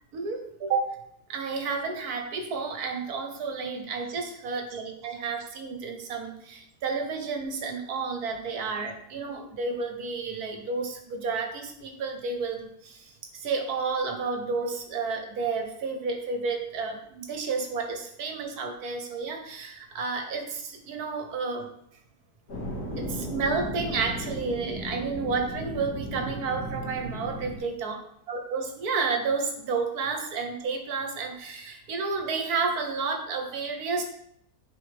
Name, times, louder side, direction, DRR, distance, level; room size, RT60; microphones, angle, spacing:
voice 1, 0.1-0.9 1.3-21.7 23.0-28.0 28.3-34.0, right 4 dB, 65° right, 4 dB, 1.5 m, -31 dB
sound 1, 22.5-27.6, equal, 65° left, 2.3 m, -35 dB
9.8 x 4.7 x 3.4 m, 0.74 s
omnidirectional pair, 1.8 m